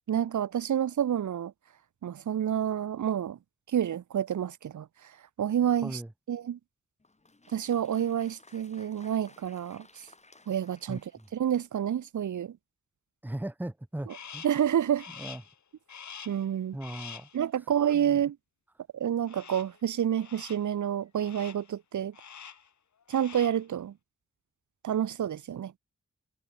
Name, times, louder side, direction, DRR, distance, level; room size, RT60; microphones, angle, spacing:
voice 1, 0.1-1.5 2.0-3.4 3.7-4.9 5.4-6.0 6.3-6.6 7.5-9.9 10.5-11.0 11.3-12.6 14.4-15.0 16.3-16.8 17.3-18.4 18.9-22.1 23.1-23.9 24.8-25.7, right 9 dB, 85° right, 0.8 m, -28 dB
Applause, 7.0-11.9, left 3 dB, 25° left, 2.9 m, -58 dB
voice 2, 10.9-11.3 13.2-14.5 15.2-15.4 16.7-17.3 17.9-18.2, right 1 dB, 5° right, 1.0 m, -38 dB
Crow, 14.1-14.7 15.0-15.6 15.9-16.5 16.8-17.4 19.3-19.8 20.2-20.7 21.2-21.7 22.1-22.7 23.0-23.7, left 7 dB, 75° left, 1.8 m, -46 dB
wide cardioid pair, 165°, 29 cm